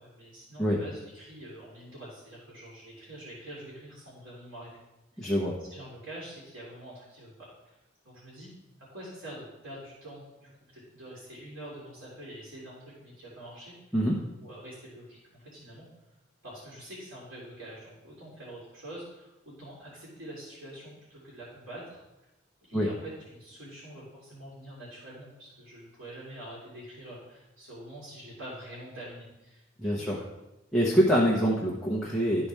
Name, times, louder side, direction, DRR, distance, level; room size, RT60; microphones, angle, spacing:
voice 1, 0.0-4.8 5.1-5.3 5.7-7.8 8.0-8.5 8.8-14.0 14.4-15.9 16.4-22.0 22.6-30.3, right 1 dB, 90° right, -8 dB, 2.8 m, -45 dB
voice 2, 5.2-5.5 13.9-14.2 22.7-22.9 29.8-30.2 30.7-32.5, equal, 5° left, -6 dB, 1.0 m, -25 dB
13.0 x 4.3 x 3.4 m, 0.98 s
head